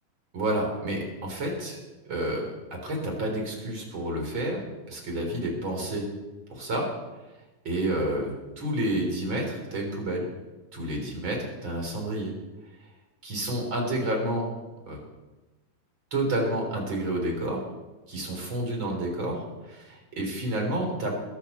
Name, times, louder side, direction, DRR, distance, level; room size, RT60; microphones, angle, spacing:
voice 1, 0.3-1.8 2.1-4.6 4.9-6.1 6.5-6.9 7.6-10.3 10.7-12.3 13.2-14.5 14.9-15.0 16.1-17.6 18.1-21.1, right 1 dB, 35° right, 1 dB, 4.2 m, -29 dB
21.5 x 7.3 x 6.7 m, 1.1 s
omnidirectional pair, 3.7 m